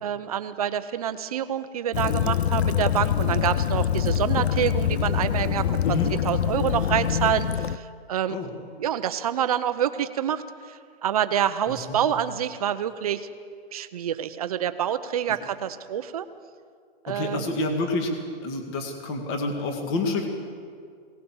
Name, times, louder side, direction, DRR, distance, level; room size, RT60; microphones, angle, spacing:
voice 1, 0.0-5.8 6.1-8.4 8.8-13.3 13.7-16.3 17.0-17.5, right 9 dB, 35° right, 11 dB, 0.8 m, -27 dB
Waves surf / Splash splatter / Trickle dribble, 1.9-7.8, left 9 dB, 80° left, 0.7 m, -24 dB
voice 2, 17.1-18.1 18.4-20.3, left 2 dB, 25° left, 4 dB, 2.1 m, -28 dB
21.0 x 18.0 x 7.2 m, 2.1 s
hypercardioid pair, 170°, 32 cm